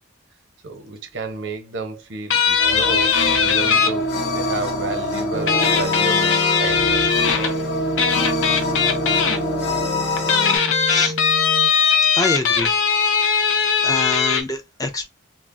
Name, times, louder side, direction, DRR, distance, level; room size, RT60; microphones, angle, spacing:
voice 1, 0.6-7.2, right 3 dB, 75° right, 0.7 m, -32 dB
sound 1, 2.3-3.9 5.5-7.5 8.0-9.4 10.2-14.4, left 6 dB, 80° left, 0.5 m, -19 dB
sound 2, 2.6-10.6, left 1 dB, 60° left, 0.9 m, -25 dB
sound 3, 5.3-11.7, equal, 45° right, 0.5 m, -29 dB
voice 2, 10.8-11.1 12.1-12.8 13.8-15.0, left 2 dB, 20° left, 0.4 m, -25 dB
2.1 x 2.0 x 3.6 m
head